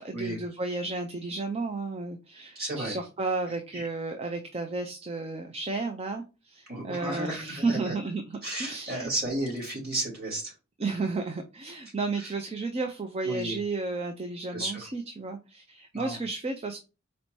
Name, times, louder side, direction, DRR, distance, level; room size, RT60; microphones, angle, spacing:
voice 1, 0.0-9.1 10.8-16.8, right 3 dB, 30° right, 5 dB, 0.4 m, -33 dB
voice 2, 2.5-2.9 3.7-3.9 6.7-8.0 8.4-10.5 12.2-12.3 13.2-13.5 14.5-14.9 15.9-16.2, right 1 dB, 45° right, -2 dB, 2.5 m, -33 dB
4.3 x 2.7 x 4.4 m, 0.30 s
head